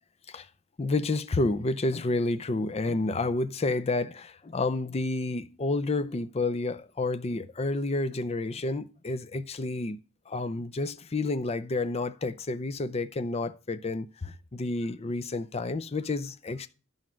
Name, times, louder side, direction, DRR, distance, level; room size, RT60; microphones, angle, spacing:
voice 1, 0.8-10.0 10.3-16.7, left 2 dB, 30° left, 0.5 m, -30 dB
11.0 x 5.6 x 5.0 m
head